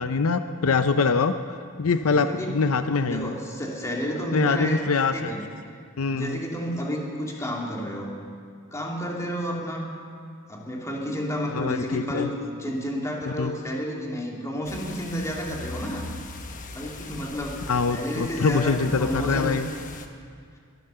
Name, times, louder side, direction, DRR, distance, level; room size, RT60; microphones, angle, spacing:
voice 1, 0.0-1.3 1.8-3.3 4.3-5.4 6.0-6.4 11.5-12.3 13.2-13.5 17.7-19.7, left 4 dB, 75° left, 9 dB, 0.6 m, -24 dB
voice 2, 2.0-2.6 3.0-4.9 5.1-5.5 6.1-8.1 8.7-9.9 10.5-16.1 16.7-19.6, equal, 15° left, -1 dB, 2.3 m, -31 dB
sound 1, 14.6-20.1, left 2 dB, 40° left, 1.1 m, -39 dB
22.0 x 9.3 x 6.8 m, 2.3 s
head